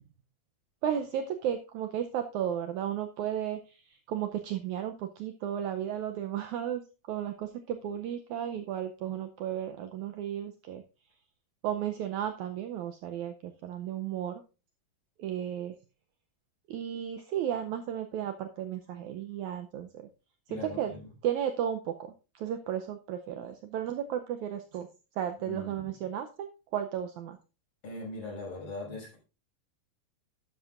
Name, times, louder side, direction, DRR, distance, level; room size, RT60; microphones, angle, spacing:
voice 1, 0.8-6.8 7.1-10.8 11.6-14.4 15.2-15.8 16.7-20.1 20.5-20.9 21.2-24.9 25.2-27.4, right 10 dB, 80° right, 7 dB, 1.7 m, -34 dB
voice 2, 20.5-21.0 25.4-25.9 27.8-29.2, left 2 dB, 40° left, -3 dB, 6.6 m, -40 dB
12.0 x 9.9 x 2.5 m, 0.31 s
omnidirectional pair, 4.1 m